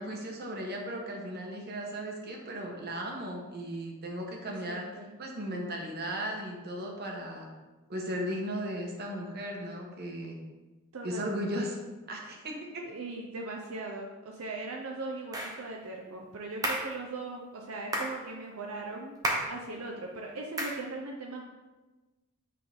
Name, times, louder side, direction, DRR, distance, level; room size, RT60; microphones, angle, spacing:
voice 1, 0.0-4.9 5.2-7.5 7.9-10.4 11.0-11.8 12.1-12.8, equal, 50° right, 1 dB, 1.1 m, -36 dB
voice 2, 4.5-5.1 10.9-11.3 12.8-19.2 19.5-21.4, right 3 dB, 75° right, 0 dB, 0.6 m, -39 dB
sound 1, 15.3-15.6 16.6-16.9 17.9-18.2 19.2-19.6 20.6-20.8, right 1 dB, 15° right, 0.9 m, -31 dB
8.4 x 3.8 x 3.5 m, 1.2 s
head